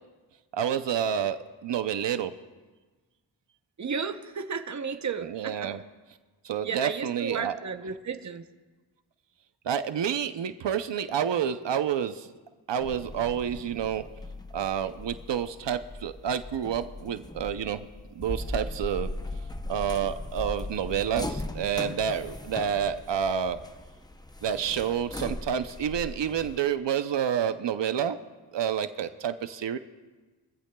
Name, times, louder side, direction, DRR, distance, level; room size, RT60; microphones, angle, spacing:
voice 1, 0.5-2.3 5.2-5.8 6.4-7.5 9.6-12.3 12.7-14.1 14.5-17.9 18.2-19.1 19.7-23.6 24.4-28.2 28.5-29.8, right 8 dB, 80° right, 10 dB, 0.6 m, -29 dB
voice 2, 3.8-5.7 6.6-8.4, right 6 dB, 40° right, 8 dB, 0.7 m, -33 dB
sound 1, 12.8-26.6, left 1 dB, 10° left, 0.5 m, -39 dB
23.0 x 15.0 x 2.2 m, 1.3 s
wide cardioid pair, 125°, 42 cm